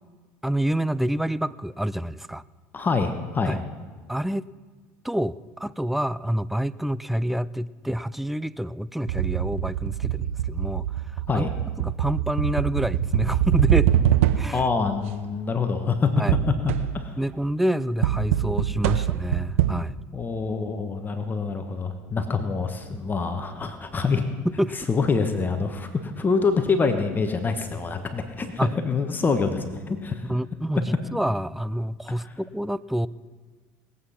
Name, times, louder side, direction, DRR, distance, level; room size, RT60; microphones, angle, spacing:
voice 1, 0.4-2.4 3.5-3.6 4.1-4.5 5.0-11.5 11.8-13.9 14.4-14.7 16.2-16.4 17.2-20.0 24.6-24.9 28.6-28.7 30.3-33.1, right 1 dB, 5° right, 18 dB, 0.4 m, -27 dB
voice 2, 2.7-3.6 11.3-11.5 14.5-16.1 16.6-17.2 20.1-24.3 24.9-30.3, left 4 dB, 25° left, 6 dB, 1.4 m, -26 dB
sound 1, 9.1-14.7 16.3-17.1 18.0-19.7, right 11 dB, 85° right, 0.6 m, -24 dB
20.0 x 8.5 x 5.8 m, 1.4 s
hypercardioid pair, 80°, 7 cm